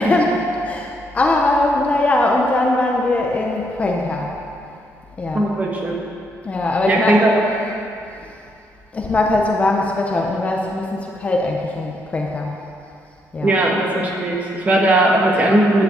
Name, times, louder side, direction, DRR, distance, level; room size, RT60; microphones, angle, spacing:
voice 1, 0.0-4.3 5.2-5.5 6.4-7.2 8.2-8.3 8.9-12.5 13.3-13.6, left 2 dB, 20° left, 0 dB, 0.7 m, -20 dB
voice 2, 5.3-6.0 6.9-7.3 13.4-15.8, right 1 dB, 25° right, -2 dB, 1.3 m, -17 dB
10.5 x 5.1 x 7.9 m, 2.6 s
cardioid pair, 180°, 6 cm